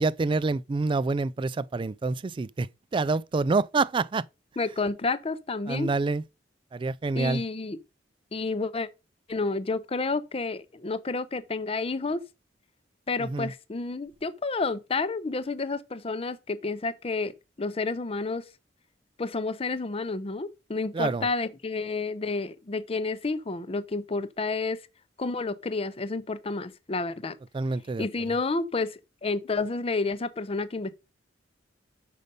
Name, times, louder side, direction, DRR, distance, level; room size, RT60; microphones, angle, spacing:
voice 1, 0.0-4.3 5.7-6.3 6.7-7.4 13.2-13.5 20.9-21.3 27.5-28.1, right 3 dB, 25° right, 0.3 m, -27 dB
voice 2, 4.6-5.9 7.1-7.8 8.3-8.9 9.3-12.2 13.1-18.4 19.2-24.8 25.2-27.4 28.0-30.9, left 3 dB, 30° left, 0.5 m, -30 dB
6.6 x 5.3 x 5.3 m
head